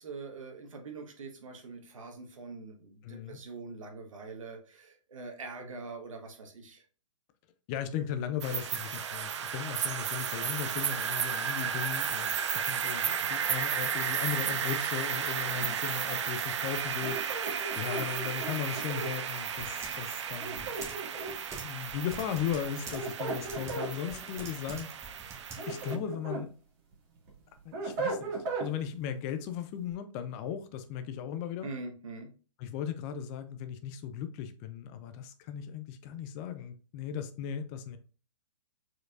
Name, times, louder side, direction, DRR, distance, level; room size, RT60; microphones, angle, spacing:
voice 1, 0.0-6.8 15.5-15.7 31.6-32.3, right 3 dB, 75° right, 1.3 m, -43 dB
voice 2, 3.0-3.4 7.7-17.2 17.8-20.7 21.6-24.9 25.7-26.5 27.6-31.7 32.6-38.0, left 9 dB, 25° left, 0.4 m, -37 dB
sound 1, 8.4-26.0, right 8 dB, 60° right, 0.6 m, -34 dB
sound 2, 17.0-19.1 20.4-21.5 22.7-23.9 25.3-26.5 26.9-28.7, right 3 dB, 40° right, 2.0 m, -36 dB
Typing, 18.6-26.0, right 3 dB, 15° right, 1.2 m, -47 dB
4.6 x 4.5 x 2.4 m
hypercardioid pair, 130°, 17 cm